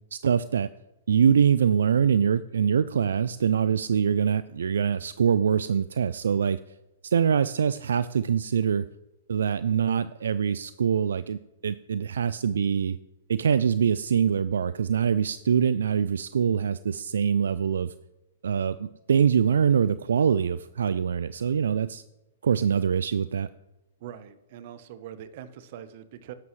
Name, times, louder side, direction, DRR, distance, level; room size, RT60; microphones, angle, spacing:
voice 1, 0.1-0.7 1.1-6.6 7.0-8.8 9.3-13.0 13.3-17.9 18.4-22.0 22.4-23.5, right 7 dB, 80° right, 15 dB, 0.3 m, -24 dB
voice 2, 24.0-26.3, right 10 dB, 55° right, 13 dB, 0.9 m, -42 dB
13.0 x 11.0 x 3.2 m, 1.0 s
hypercardioid pair, 130°, 0 cm